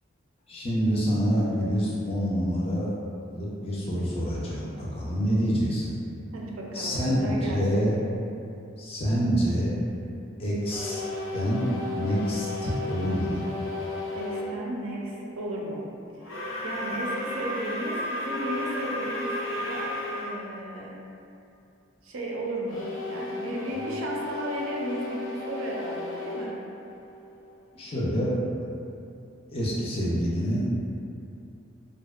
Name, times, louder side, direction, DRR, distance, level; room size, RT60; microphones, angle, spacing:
voice 1, 0.5-2.9 3.3-6.0 6.7-8.0 8.8-9.7 10.4-11.0 11.3-13.5 27.7-28.3 29.5-30.6, equal, 30° left, -6 dB, 0.3 m, -27 dB
voice 2, 6.3-7.9 14.1-15.8 16.1-21.0 22.0-22.8 23.1-26.6, right 1 dB, 75° right, -3 dB, 0.4 m, -34 dB
sound 1, 10.6-14.5 16.2-20.3 22.6-27.5, left 2 dB, 80° left, 0.5 m, -34 dB
2.6 x 2.0 x 2.3 m, 2.6 s
head